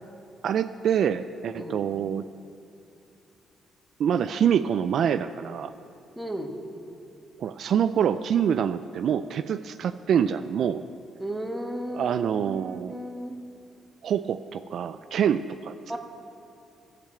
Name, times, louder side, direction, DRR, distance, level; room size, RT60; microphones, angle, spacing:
voice 1, 0.4-2.2 4.0-5.7 7.4-10.8 11.9-12.9 14.0-16.0, right 8 dB, 65° right, 10 dB, 0.3 m, -26 dB
voice 2, 6.2-6.6 11.2-12.2 12.5-13.4 15.9-16.0, right 1 dB, 10° right, 2 dB, 1.4 m, -34 dB
13.5 x 6.8 x 7.3 m, 2.6 s
cardioid pair, 90°, 0 cm